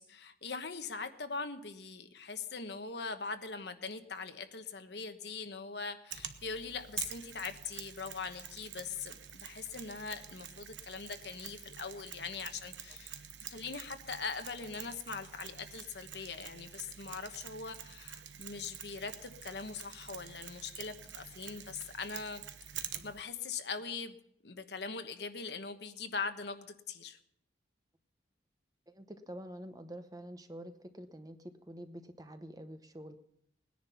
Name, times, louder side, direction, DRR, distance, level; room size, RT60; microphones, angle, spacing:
voice 1, 0.0-22.4 23.0-24.2 24.4-27.2, left 5 dB, 65° left, 8 dB, 1.1 m, -41 dB
Mechanisms, 6.1-23.2, right 9 dB, 80° right, 1.0 m, -47 dB
voice 2, 28.9-33.2, right 1 dB, 20° right, 8 dB, 0.8 m, -47 dB
19.0 x 10.5 x 5.7 m, 0.74 s
head